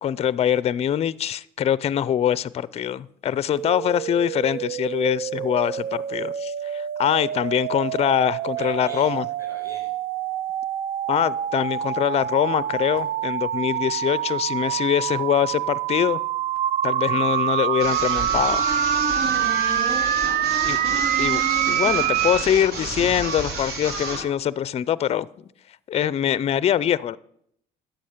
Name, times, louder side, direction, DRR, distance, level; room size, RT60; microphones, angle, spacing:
voice 1, 0.0-9.3 11.1-16.2 16.8-18.7 20.6-20.8 21.2-21.4 21.7-25.3 25.9-27.2, left 10 dB, 40° left, 19 dB, 0.4 m, -23 dB
sound 1, 3.6-22.5, right 10 dB, 55° right, 0.5 m, -26 dB
voice 2, 8.6-9.9 20.1-20.8, right 2 dB, 25° right, -6 dB, 4.6 m, -44 dB
sound 2, 17.8-24.3, right 2 dB, 80° right, 3.4 m, -30 dB
12.0 x 8.0 x 6.6 m, 0.71 s
cardioid pair, 110°, 17 cm